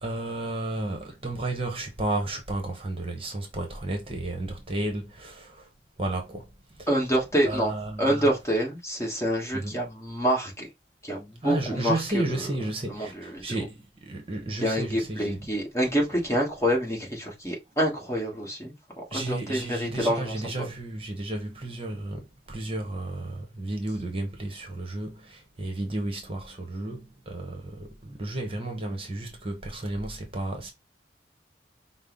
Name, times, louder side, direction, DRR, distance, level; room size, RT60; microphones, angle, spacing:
voice 1, 0.0-5.7 6.0-6.5 6.8-6.9 7.4-8.3 9.5-9.8 11.4-15.5 19.1-30.7, right 2 dB, 30° right, 0.9 m, -33 dB
voice 2, 6.9-10.7 11.0-12.5 12.9-13.6 14.6-20.7, equal, 15° left, 1.3 m, -27 dB
5.3 x 2.0 x 3.8 m
head